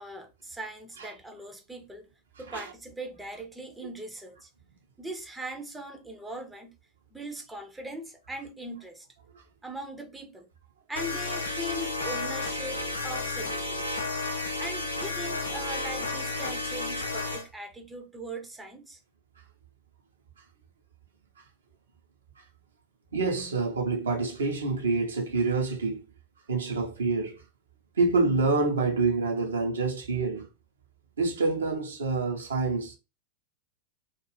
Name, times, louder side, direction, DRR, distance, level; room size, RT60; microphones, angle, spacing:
voice 1, 0.0-2.1 2.4-4.5 5.0-6.7 7.1-9.1 9.6-10.5 10.9-13.9 14.6-19.0, right 1 dB, 5° right, 0.5 m, -40 dB
sound 1, 11.0-17.5, left 2 dB, 75° left, 0.5 m, -32 dB
voice 2, 23.1-26.0 26.5-27.4 28.0-30.5 31.2-33.0, right 3 dB, 70° right, 0.7 m, -27 dB
2.4 x 2.3 x 3.2 m
figure-of-eight pair, 90°, 0 cm